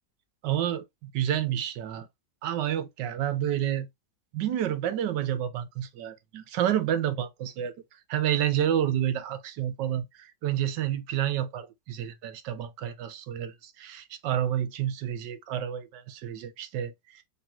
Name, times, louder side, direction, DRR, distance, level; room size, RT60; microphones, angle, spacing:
voice 1, 0.4-2.1 2.4-3.9 4.3-7.7 8.1-17.2, right 10 dB, 85° right, 1.4 m, -29 dB
4.3 x 3.4 x 2.3 m
omnidirectional pair, 1.8 m